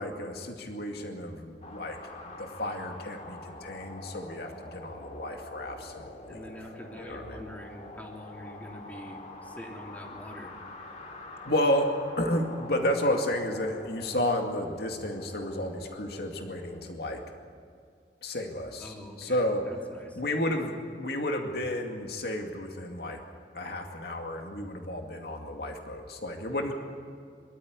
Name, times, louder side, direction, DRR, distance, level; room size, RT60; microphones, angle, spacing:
voice 1, 0.0-2.0 2.4-6.4 7.0-7.4 11.4-17.2 18.2-19.6 20.2-23.2 23.5-26.7, left 1 dB, 65° left, 3 dB, 2.3 m, -32 dB
sound 1, 1.6-16.9, left 2 dB, 40° left, 2.2 m, -46 dB
voice 2, 6.3-10.5 18.8-19.4 19.7-20.2, equal, 10° left, -1 dB, 3.3 m, -44 dB
24.0 x 13.5 x 9.7 m, 2.3 s
head